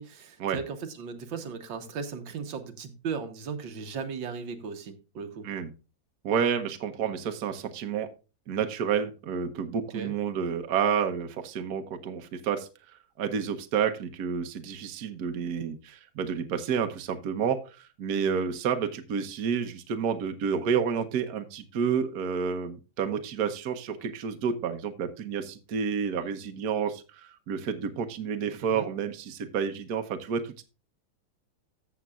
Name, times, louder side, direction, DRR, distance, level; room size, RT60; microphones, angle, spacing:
voice 1, 0.0-5.5 9.9-10.1 28.6-28.9, right 5 dB, 75° right, 1.8 m, -37 dB
voice 2, 6.2-8.1 8.5-12.7 13.2-30.6, right 7 dB, 55° right, 1.4 m, -30 dB
14.0 x 7.3 x 2.4 m
omnidirectional pair, 2.1 m